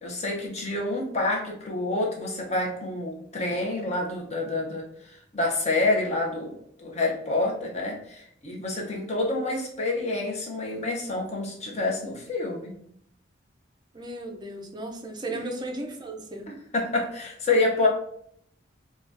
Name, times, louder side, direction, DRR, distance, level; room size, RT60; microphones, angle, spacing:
voice 1, 0.0-12.7 15.3-15.4 16.5-17.9, left 2 dB, 35° left, 0 dB, 0.6 m, -28 dB
voice 2, 13.9-16.5, right 1 dB, 20° right, 2 dB, 0.4 m, -35 dB
2.6 x 2.2 x 3.3 m, 0.69 s
head